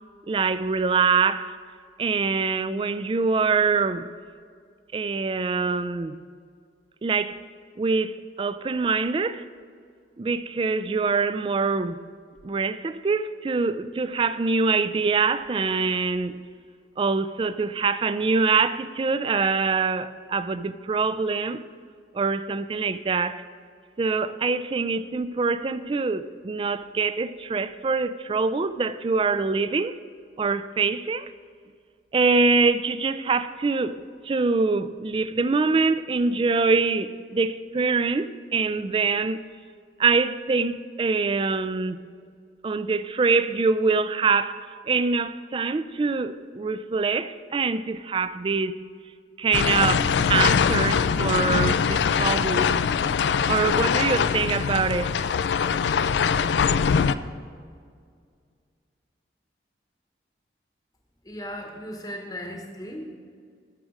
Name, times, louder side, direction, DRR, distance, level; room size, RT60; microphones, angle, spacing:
voice 1, 0.3-1.5 2.0-4.1 4.9-6.2 7.0-7.4 7.8-8.1 8.4-9.4 10.2-12.0 12.4-16.4 17.0-21.6 22.1-23.4 24.0-30.0 30.4-31.3 32.1-39.4 40.0-42.0 42.6-44.6 44.9-48.8 49.4-52.7 53.5-55.3, right 4 dB, 30° right, 0.3 m, -24 dB
sound 1, 49.5-57.2, left 6 dB, 80° left, 0.4 m, -22 dB
voice 2, 61.2-63.2, equal, 20° left, 0.9 m, -36 dB
12.5 x 6.4 x 4.8 m
head